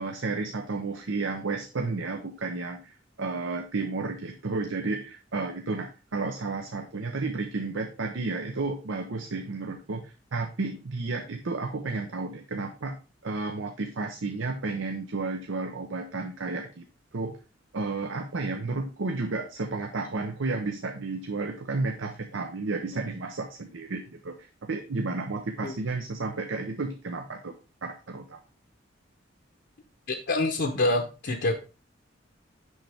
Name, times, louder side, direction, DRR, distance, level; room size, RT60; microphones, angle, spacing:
voice 1, 0.0-13.0 13.2-16.9 17.1-17.4 17.7-27.5 27.8-28.4, right 3 dB, 75° right, 5 dB, 0.7 m, -32 dB
voice 2, 30.1-31.5, left 2 dB, 60° left, 2 dB, 0.8 m, -26 dB
6.5 x 5.7 x 3.4 m, 0.31 s
head